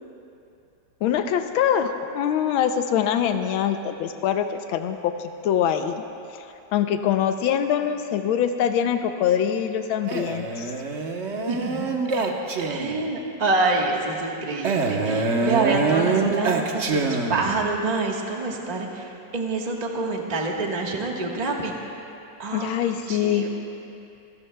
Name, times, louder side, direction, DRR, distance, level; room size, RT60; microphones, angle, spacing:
voice 1, 1.0-5.1 5.4-6.0 6.3-6.4 6.7-10.7 22.5-23.5, left 9 dB, 90° left, 7 dB, 1.5 m, -23 dB
Male speech man speaking, 10.1-13.1 14.6-17.6, right 4 dB, 45° right, 1.0 m, -25 dB
voice 2, 11.5-12.3 12.6-21.7 22.4-22.7 23.1-23.5, right 3 dB, 25° right, -1 dB, 1.3 m, -27 dB
27.0 x 18.5 x 2.3 m, 2.7 s
omnidirectional pair, 2.2 m